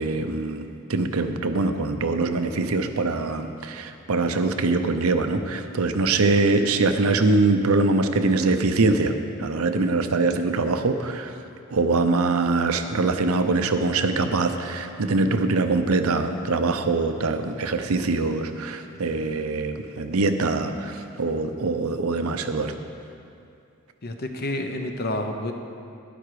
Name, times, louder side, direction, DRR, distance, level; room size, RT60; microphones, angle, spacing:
voice 1, 0.0-11.3 11.7-22.8, right 3 dB, 85° right, 7 dB, 0.7 m, -23 dB
voice 2, 24.0-25.5, left 1 dB, 45° left, 5 dB, 0.9 m, -29 dB
11.5 x 10.0 x 4.9 m, 2.5 s
head